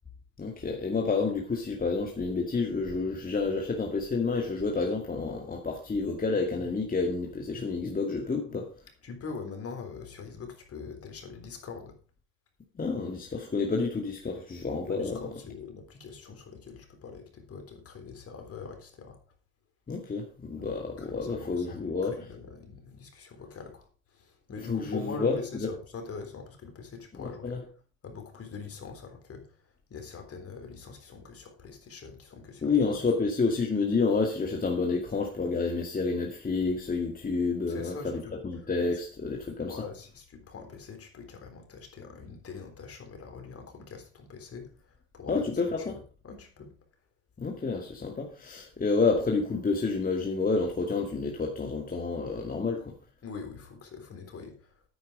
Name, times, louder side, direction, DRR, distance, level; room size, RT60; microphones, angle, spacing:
voice 1, 0.4-8.7 12.8-15.2 19.9-22.2 24.7-25.7 27.1-27.6 32.6-39.8 45.3-46.0 47.4-52.9, left 4 dB, 25° left, 1 dB, 2.2 m, -29 dB
voice 2, 9.0-12.0 14.9-19.2 20.5-27.6 28.0-29.6 29.9-33.0 37.7-38.4 39.7-45.5 45.9-46.0 46.2-46.7 53.2-54.7, left 5 dB, 45° left, 5 dB, 3.7 m, -43 dB
9.3 x 9.1 x 5.0 m, 0.39 s
supercardioid pair, 75°, 32 cm